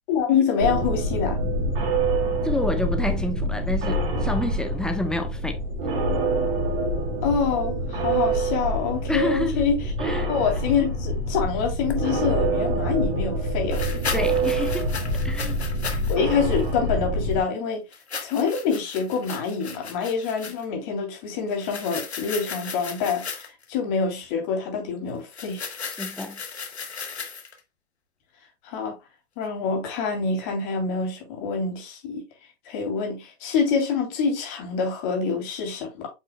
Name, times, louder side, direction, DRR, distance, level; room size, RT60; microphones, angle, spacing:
voice 1, 0.1-1.4 7.2-9.8 10.3-13.8 16.1-17.8 18.2-25.7 28.6-29.0 29.4-32.2 32.6-36.1, left 6 dB, 45° left, 2.7 m, -26 dB
sound 1, 0.6-17.4, right 1 dB, 55° right, 2.2 m, -26 dB
voice 2, 2.4-5.6 9.1-9.7 10.0-10.3 13.9-15.6 26.0-26.4, left 1 dB, ahead, 1.0 m, -29 dB
sound 2, 11.9-12.0 13.7-16.2 16.5-16.7 17.9-20.6 21.5-23.6 25.3-27.6, left 5 dB, 80° left, 1.2 m, -36 dB
8.3 x 5.4 x 2.2 m
figure-of-eight pair, 90°, 32 cm